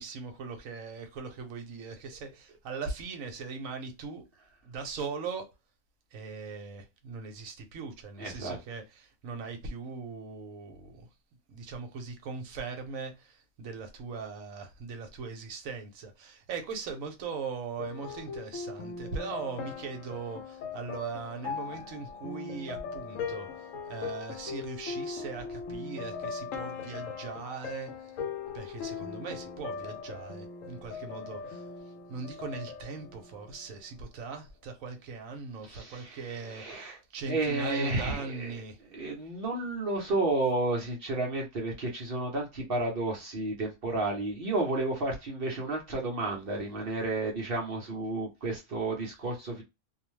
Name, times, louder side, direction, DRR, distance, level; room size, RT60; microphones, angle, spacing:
voice 1, 0.0-4.2 4.6-5.5 6.1-11.1 11.5-28.1 28.5-31.7 32.1-38.8, right 5 dB, 70° right, 1.1 m, -40 dB
voice 2, 8.2-8.6 35.7-37.0 37.3-38.5 38.9-49.6, right 2 dB, 50° right, 0.8 m, -32 dB
sound 1, 17.8-33.8, left 5 dB, 70° left, 0.9 m, -40 dB
2.6 x 2.1 x 3.0 m
omnidirectional pair, 1.5 m